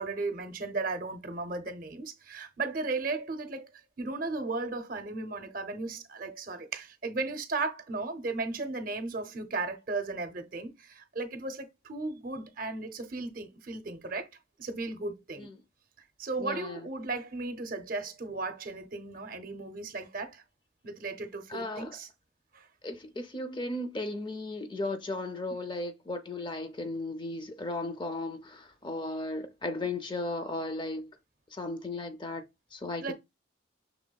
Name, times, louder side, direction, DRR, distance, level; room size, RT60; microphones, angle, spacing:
voice 1, 0.0-3.7 4.0-14.3 14.6-15.5 16.2-20.4 20.8-22.1 22.5-22.7 33.0-33.1, right 3 dB, 45° right, 0.6 m, -35 dB
voice 2, 16.4-16.9 21.5-22.0 22.8-31.1 31.5-32.4 32.7-33.1, left 2 dB, 25° left, 0.4 m, -36 dB
6.0 x 3.4 x 2.3 m
head